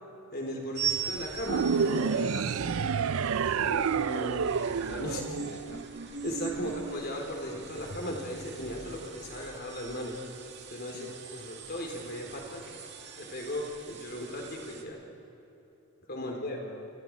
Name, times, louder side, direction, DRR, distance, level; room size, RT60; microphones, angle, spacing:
voice 1, 0.3-2.3 3.6-5.4 6.2-10.2 10.7-12.7 13.2-15.0 16.1-16.6, equal, 45° left, 1 dB, 4.2 m, -37 dB
sound 1, 0.7-14.8, right 6 dB, 55° right, 2.2 m, -41 dB
sound 2, 1.5-6.0, right 6 dB, 75° right, 0.4 m, -29 dB
voice 2, 2.1-3.1 5.1-5.9 6.6-6.8 10.9-11.1 16.2-16.9, left 3 dB, 65° left, 5 dB, 1.0 m, -46 dB
28.5 x 22.5 x 4.9 m, 2.9 s
head